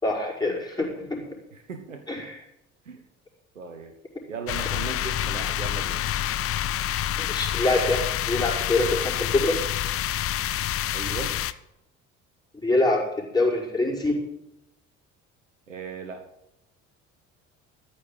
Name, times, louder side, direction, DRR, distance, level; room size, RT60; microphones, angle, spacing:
voice 1, 0.0-1.2 2.1-2.4 7.2-9.6 12.5-14.2, left 2 dB, 10° left, -3 dB, 5.3 m, -25 dB
voice 2, 1.5-2.0 2.8-3.0 3.5-3.9 4.3-6.0 10.9-11.3 15.7-16.2, right 5 dB, 80° right, 6 dB, 1.1 m, -37 dB
sound 1, 4.5-11.5, left 12 dB, 35° left, 0.7 m, -27 dB
14.0 x 5.9 x 9.1 m, 0.86 s
figure-of-eight pair, 55°, 38 cm